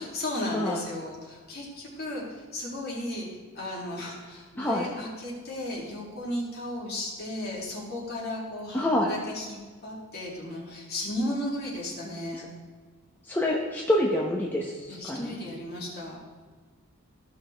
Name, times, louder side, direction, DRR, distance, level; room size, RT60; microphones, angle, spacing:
voice 1, 0.0-3.3 3.5-12.5 14.9-16.2, left 1 dB, 45° left, -5 dB, 2.6 m, -35 dB
voice 2, 8.7-9.1 13.3-14.7 15.1-15.3, left 1 dB, 10° left, -2 dB, 0.8 m, -26 dB
15.0 x 5.6 x 3.4 m, 1.4 s
head